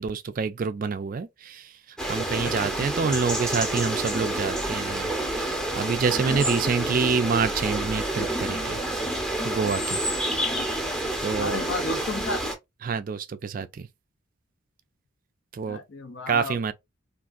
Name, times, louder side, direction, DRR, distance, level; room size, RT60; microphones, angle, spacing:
voice 1, 0.0-5.1 5.4-8.8 9.4-10.0 11.2-11.7 12.8-13.9 15.5-15.8 16.3-16.7, right 5 dB, 40° right, 0.3 m, -27 dB
sound 1, 2.0-12.5, right 1 dB, 5° left, 0.8 m, -28 dB
voice 2, 2.4-3.1 6.6-7.0 11.4-12.4 15.7-16.6, left 2 dB, 55° left, 0.6 m, -33 dB
3.5 x 2.5 x 2.4 m
head